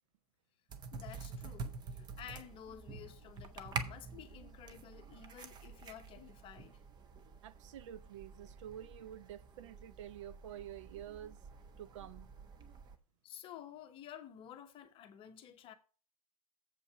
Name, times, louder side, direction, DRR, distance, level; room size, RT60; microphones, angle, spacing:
sound 1, 0.7-13.0, right 4 dB, 20° right, 0.9 m, -48 dB
voice 1, 0.9-6.8 13.2-15.7, left 10 dB, 25° left, 0.9 m, -52 dB
voice 2, 7.4-11.4 11.8-12.3, right 10 dB, 50° right, 0.7 m, -49 dB
7.7 x 5.3 x 6.0 m
figure-of-eight pair, 105°, 20 cm